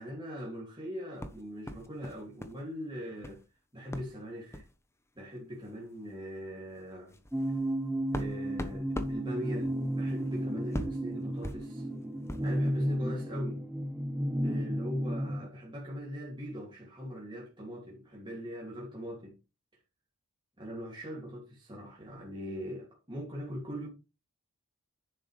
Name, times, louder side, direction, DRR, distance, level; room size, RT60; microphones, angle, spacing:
voice 1, 0.0-3.4 3.7-4.6 5.2-7.2 8.1-11.9 12.4-13.6 14.4-19.4 20.6-23.9, equal, 20° right, 2.5 m, -41 dB
sound 1, 1.2-2.6 2.9-3.4 3.9-4.1 4.5-4.7 5.6-5.7 6.1-6.2 6.7-12.6, equal, 10° left, 0.9 m, -41 dB
sound 2, 7.3-15.5, right 1 dB, 5° right, 0.5 m, -33 dB
10.5 x 7.6 x 3.3 m
head